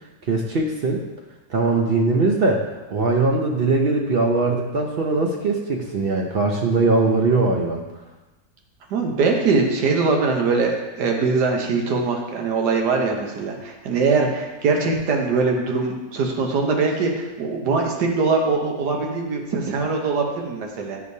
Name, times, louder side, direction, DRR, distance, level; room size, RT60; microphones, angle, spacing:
voice 1, 0.3-1.0 1.5-2.6 2.9-7.8, right 3 dB, 65° right, 1 dB, 0.5 m, -20 dB
voice 2, 8.9-21.0, right 4 dB, 90° right, 1 dB, 1.5 m, -22 dB
9.5 x 4.8 x 2.7 m, 1.1 s
omnidirectional pair, 1.7 m